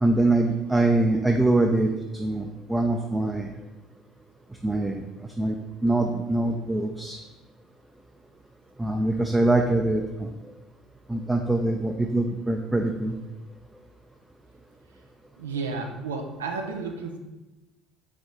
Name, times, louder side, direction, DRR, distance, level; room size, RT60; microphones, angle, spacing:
voice 1, 0.0-3.6 4.6-5.0 5.4-7.2 8.8-10.5 11.1-13.2, right 2 dB, 15° right, 3 dB, 0.4 m, -24 dB
voice 2, 15.4-17.2, right 4 dB, 85° right, 4 dB, 0.4 m, -32 dB
4.0 x 3.4 x 3.0 m, 1.1 s
hypercardioid pair, 60°, 0 cm